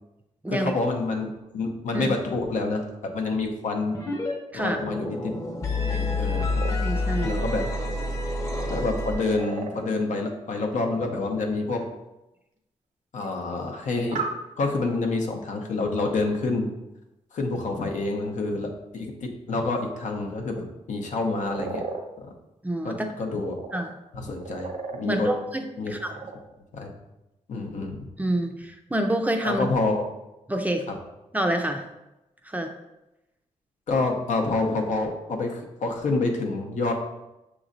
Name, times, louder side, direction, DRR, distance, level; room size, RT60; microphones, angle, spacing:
voice 1, 0.5-2.8 3.1-4.0 4.5-5.4 5.9-6.6 7.2-7.7 8.7-11.8 13.1-14.2 14.6-16.7 17.3-21.8 22.2-22.3 22.8-23.6 24.1-25.3 25.8-25.9 26.7-26.9 27.5-28.1 29.4-30.0 30.9-31.0 33.9-36.9, left 3 dB, 75° left, 2 dB, 0.7 m, -28 dB
sound 1, 3.9-4.3 4.6-9.6, left 2 dB, 25° left, 0.8 m, -28 dB
sound 2, 6.6-6.7 7.3-8.0 8.9-9.7 11.8-11.9 13.2-13.3 14.1-14.3 21.1-22.0 23.2-23.8 24.2-25.0 25.8-26.4, right 5 dB, 80° right, 0.6 m, -34 dB
voice 2, 6.8-7.4 22.6-23.0 23.7-23.9 25.0-26.1 28.2-29.7 30.5-30.9 31.3-31.8 32.4-32.7, right 1 dB, 10° right, 4 dB, 0.4 m, -27 dB
6.2 x 3.0 x 2.6 m, 0.95 s
cardioid pair, 95°, 13 cm